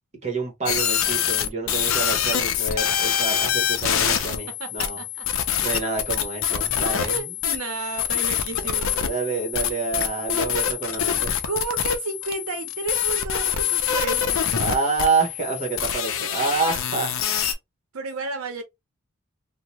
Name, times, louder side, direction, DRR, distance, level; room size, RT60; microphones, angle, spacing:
voice 1, 0.2-5.0 5.6-7.3 9.0-11.3 14.5-17.4, right 4 dB, 30° right, 1.1 m, -28 dB
sound 1, 0.7-17.5, left 8 dB, 65° left, 0.5 m, -25 dB
voice 2, 4.1-5.3 7.0-9.0 11.4-14.5 17.9-18.6, right 4 dB, 85° right, 0.7 m, -32 dB
2.8 x 2.1 x 3.0 m
head